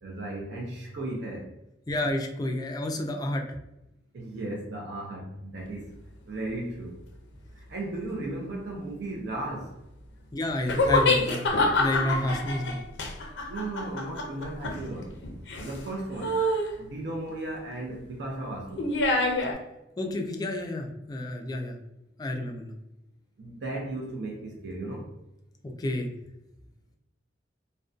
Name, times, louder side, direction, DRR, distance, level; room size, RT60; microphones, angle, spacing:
voice 1, 0.0-1.5 4.1-6.0 6.3-7.0 7.6-9.8 13.5-15.1 15.6-16.4 16.8-18.9 23.4-25.1, right 2 dB, 70° right, -1 dB, 0.4 m, -35 dB
voice 2, 1.9-3.4 10.3-12.8 20.0-21.8 22.2-22.7 25.6-26.1, left 1 dB, 20° left, 3 dB, 0.3 m, -30 dB
sound 1, 10.7-15.9 16.2-16.7 18.8-19.5, left 2 dB, 85° left, 0.5 m, -26 dB
2.5 x 2.1 x 2.3 m, 0.89 s
head